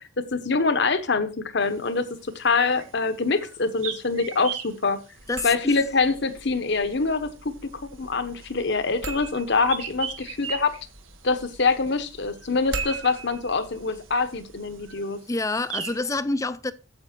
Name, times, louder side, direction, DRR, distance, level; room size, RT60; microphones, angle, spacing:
voice 1, 0.0-2.0 2.3-5.0 5.4-7.7 8.0-10.7 11.2-15.2, left 4 dB, 60° left, 1.0 m, -25 dB
sound 1, 1.6-16.1, right 8 dB, 90° right, 1.5 m, -42 dB
sound 2, 5.2-15.0, right 3 dB, 65° right, 1.6 m, -41 dB
voice 2, 5.3-5.8 15.3-16.7, left 2 dB, 15° left, 0.5 m, -27 dB
9.0 x 7.8 x 4.4 m
head